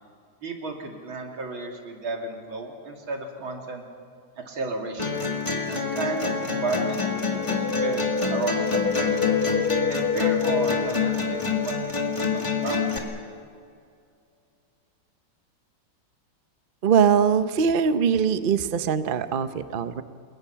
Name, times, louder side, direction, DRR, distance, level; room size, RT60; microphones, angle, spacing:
voice 1, 0.4-3.8 4.5-5.2 5.7-9.3 9.9-12.8, right 3 dB, 85° right, 1 dB, 3.6 m, -33 dB
sound 1, 5.0-13.0, left 5 dB, 15° left, 2.0 m, -27 dB
Wind, 7.4-11.7 12.0-12.1, left 5 dB, 50° left, 0.7 m, -27 dB
voice 2, 16.8-20.0, right 7 dB, 50° right, 11 dB, 0.6 m, -22 dB
29.0 x 21.5 x 5.9 m, 2.4 s
omnidirectional pair, 2.2 m